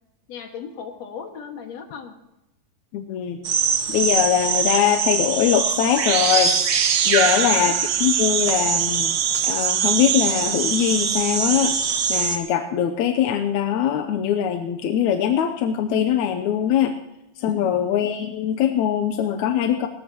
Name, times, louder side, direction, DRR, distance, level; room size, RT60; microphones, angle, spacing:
voice 1, 0.3-2.1 7.2-7.8 17.4-17.9, left 6 dB, 55° left, 4 dB, 2.8 m, -37 dB
voice 2, 2.9-3.4 3.9-6.5 7.1-9.1 9.4-11.8 12.1-16.9 17.4-19.9, left 9 dB, 75° left, 6 dB, 1.9 m, -22 dB
sound 1, 3.4-12.4, right 7 dB, 75° right, 1.2 m, -22 dB
20.0 x 18.5 x 3.0 m, 0.91 s
omnidirectional pair, 4.0 m